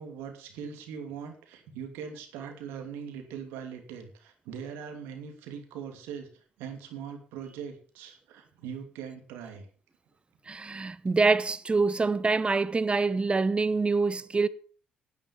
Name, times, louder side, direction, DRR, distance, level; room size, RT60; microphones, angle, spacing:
voice 1, 0.0-9.7, right 7 dB, 85° right, 2.7 m, -41 dB
voice 2, 10.5-14.5, right 3 dB, 30° right, 1.0 m, -25 dB
10.5 x 8.9 x 7.0 m
supercardioid pair, 55°, 4 cm